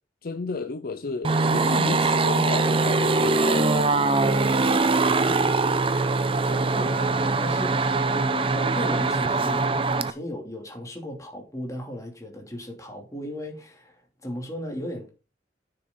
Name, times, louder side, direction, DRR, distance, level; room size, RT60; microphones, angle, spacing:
voice 1, 0.2-4.1, left 3 dB, 55° left, 0.7 m, -32 dB
sound 1, 1.2-10.1, right 3 dB, 30° right, 0.7 m, -22 dB
voice 2, 5.0-5.8 6.4-15.1, equal, 20° left, 2.8 m, -36 dB
9.8 x 6.8 x 3.9 m
head